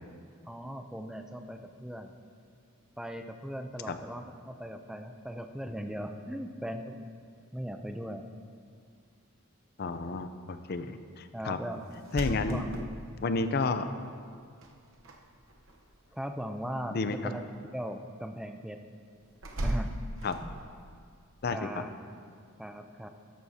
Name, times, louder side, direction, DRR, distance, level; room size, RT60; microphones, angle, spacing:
voice 1, 0.4-2.1 3.0-7.1 7.5-8.2 11.3-11.8 12.4-12.7 16.1-18.8 19.6-19.9 20.4-20.6 21.5-21.9 22.6-23.1, equal, 5° right, 6 dB, 0.4 m, -38 dB
voice 2, 9.8-11.6 12.1-12.6 13.2-13.9 16.9-17.2 20.2-20.3 21.4-21.8, left 3 dB, 50° left, 10 dB, 0.5 m, -31 dB
sound 1, 11.9-13.5 14.6-15.2 15.4-15.9 19.4-20.8, right 1 dB, 65° right, 0.9 m, -36 dB
13.5 x 11.0 x 2.8 m, 2.2 s
head